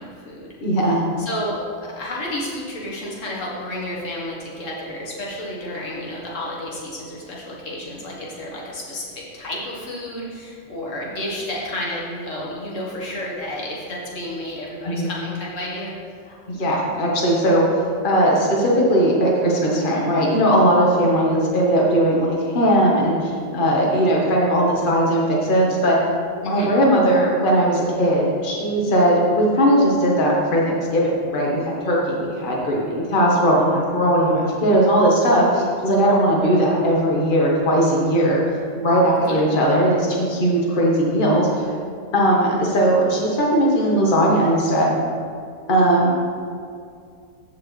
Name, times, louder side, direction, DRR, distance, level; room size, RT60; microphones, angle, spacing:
voice 1, 0.0-0.5 1.2-15.9 26.4-26.7 39.2-39.4, left 1 dB, 90° left, -4 dB, 1.8 m, -31 dB
voice 2, 0.6-1.0 14.9-15.1 16.5-17.6 18.0-26.0 26.4-38.4 38.8-41.7 42.1-45.0 45.7-46.2, right 1 dB, 45° left, -3 dB, 1.4 m, -18 dB
14.0 x 4.7 x 3.2 m, 2.3 s
omnidirectional pair, 1.3 m